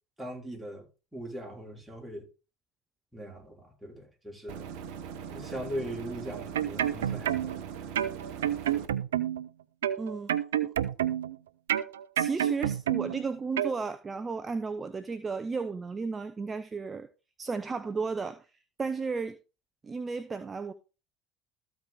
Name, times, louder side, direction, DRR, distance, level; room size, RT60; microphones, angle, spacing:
voice 1, 0.2-2.3 3.1-4.7 5.3-7.8, equal, 10° right, 5.0 m, -40 dB
sound 1, 4.5-8.9, right 8 dB, 65° right, 1.0 m, -41 dB
sound 2, 6.3-7.6 7.9-9.5 9.8-11.3 11.7-13.2 13.6-13.7, right 10 dB, 80° right, 0.4 m, -29 dB
voice 2, 10.0-10.3 10.6-10.7 12.2-17.1 17.4-18.5 18.8-19.4 19.8-20.7, right 4 dB, 25° right, 0.7 m, -34 dB
13.5 x 4.7 x 3.9 m
hypercardioid pair, 65°, 0 cm